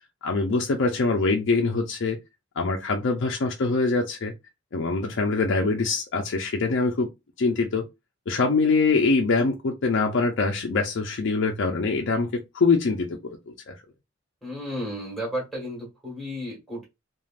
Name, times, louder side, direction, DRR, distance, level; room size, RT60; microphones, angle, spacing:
voice 1, 0.2-2.2 2.6-4.3 4.7-7.1 7.4-7.8 8.3-13.2 13.5-13.7, left 3 dB, 65° left, 0.5 m, -24 dB
voice 2, 14.4-16.8, equal, ahead, 1.5 m, -33 dB
3.2 x 2.4 x 2.4 m
head